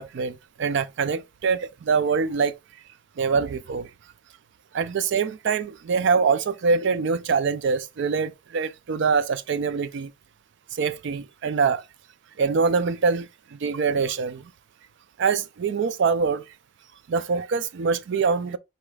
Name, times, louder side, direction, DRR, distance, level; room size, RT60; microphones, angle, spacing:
voice 1, 0.0-2.6 3.2-3.9 4.7-10.1 10.7-11.8 12.4-14.4 15.2-16.4 17.1-18.6, right 5 dB, 60° right, 0.4 m, -24 dB
4.9 x 4.2 x 2.3 m
head